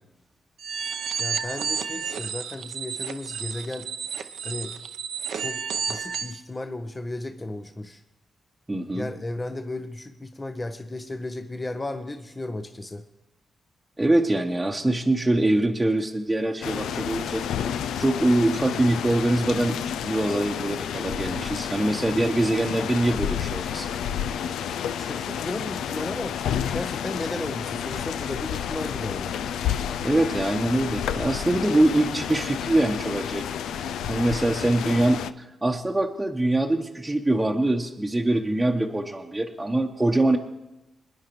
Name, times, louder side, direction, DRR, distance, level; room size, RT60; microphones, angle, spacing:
sound 1, 0.6-6.4, right 7 dB, 80° right, 0.7 m, -31 dB
voice 1, 1.2-3.9 4.4-4.7 5.3-5.6 5.9-8.0 8.9-13.0 24.9-26.4 26.7-29.3, left 2 dB, 25° left, 7 dB, 0.8 m, -34 dB
voice 2, 8.7-9.1 14.0-17.4 18.0-19.8 20.0-23.9 30.0-33.4 33.7-40.4, right 1 dB, 15° right, 0 dB, 1.0 m, -23 dB
sound 2, 16.6-35.3, left 9 dB, 85° left, 0.3 m, -30 dB
22.0 x 9.8 x 3.1 m, 0.96 s
supercardioid pair, 55°, 0 cm